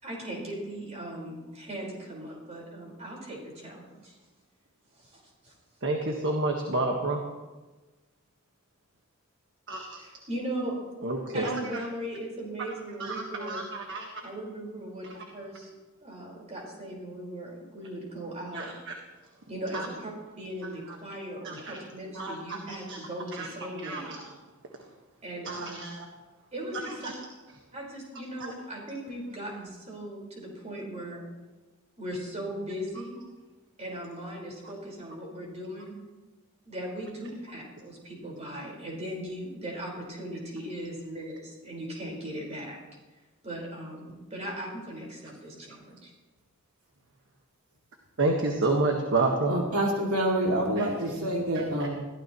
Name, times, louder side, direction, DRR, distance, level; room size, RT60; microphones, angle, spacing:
voice 1, 0.0-4.2 4.9-5.5 10.3-10.7 11.3-13.7 14.2-15.7 16.0-18.7 19.5-24.1 25.2-25.8 26.5-27.1 27.7-31.2 32.0-33.1 33.8-36.0 36.6-42.8 43.4-46.1, right 1 dB, 30° right, -2 dB, 4.9 m, -38 dB
voice 2, 5.8-7.2 9.7-9.8 11.0-11.5 13.0-14.1 15.2-15.3 18.5-18.6 19.7-19.9 21.4-21.8 22.1-23.0 23.3-23.5 23.8-24.2 25.4-26.0 27.0-27.1 48.2-49.5 50.8-50.9 51.8-51.9, right 2 dB, 60° right, 1 dB, 1.6 m, -29 dB
voice 3, 49.5-51.9, right 1 dB, 85° right, -1 dB, 2.6 m, -27 dB
21.5 x 15.5 x 3.1 m, 1.2 s
head